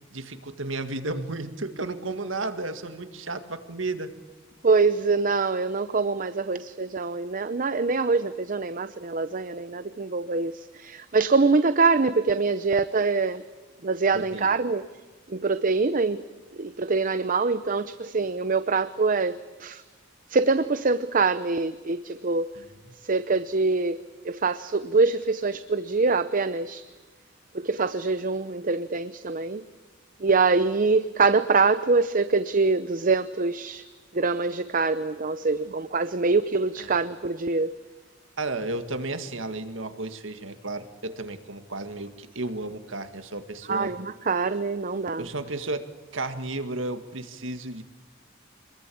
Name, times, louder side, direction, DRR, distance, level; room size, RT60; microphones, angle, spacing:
voice 1, 0.1-4.2 14.1-14.5 22.6-22.7 35.5-35.7 36.8-36.9 38.4-44.0 45.2-47.8, right 2 dB, 85° right, 9 dB, 2.0 m, -33 dB
voice 2, 4.6-13.4 13.8-14.9 15.3-16.2 16.5-19.8 20.3-22.5 23.0-24.0 24.2-26.8 27.5-29.6 30.2-33.8 34.1-37.7 43.7-45.2, right 4 dB, 45° right, 12 dB, 0.7 m, -24 dB
26.5 x 21.5 x 8.7 m, 1.2 s
head